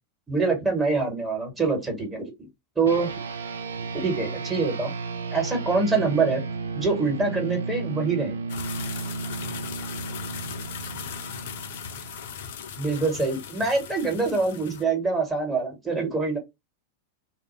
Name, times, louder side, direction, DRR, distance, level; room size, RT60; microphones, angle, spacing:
voice 1, 0.3-2.5 2.8-3.1 3.9-5.0 5.3-6.4 6.7-8.4 12.8-16.4, right 4 dB, 15° right, 1.2 m, -25 dB
sound 1, 2.9-12.6, right 4 dB, 70° right, 0.3 m, -34 dB
sound 2, 8.5-14.8, left 8 dB, 55° left, 0.4 m, -38 dB
2.2 x 2.1 x 3.0 m
figure-of-eight pair, 90°, 0 cm